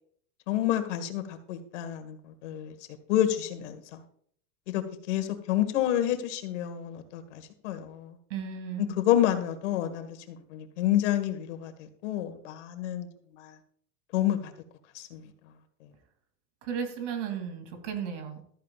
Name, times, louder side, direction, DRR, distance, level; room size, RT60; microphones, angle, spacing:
voice 1, 0.5-2.7 3.1-4.0 4.7-8.1 9.0-13.1 13.4-13.5 14.1-14.5 14.9-15.2, left 12 dB, 90° left, 1.9 m, -29 dB
voice 2, 8.3-9.0 16.6-18.4, right 7 dB, 80° right, 3.0 m, -34 dB
14.5 x 13.5 x 2.5 m
supercardioid pair, 170°, 35 cm